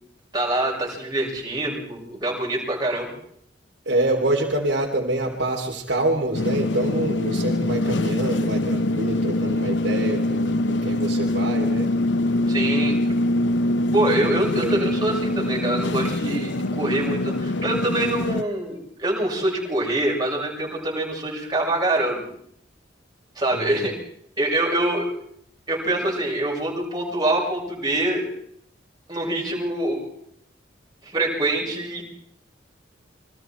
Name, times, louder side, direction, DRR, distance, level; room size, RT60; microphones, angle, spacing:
voice 1, 0.3-3.1 12.5-13.0 13.9-22.3 23.4-24.0 24.4-25.1 25.7-28.3 29.1-30.1 31.1-32.0, right 1 dB, 20° right, -2 dB, 7.3 m, -25 dB
voice 2, 3.8-11.9 14.6-14.8 23.5-23.9, right 1 dB, 65° right, -1 dB, 3.3 m, -26 dB
sound 1, 6.3-18.4, left 1 dB, 70° left, 0.9 m, -24 dB
29.0 x 24.5 x 4.6 m, 0.68 s
head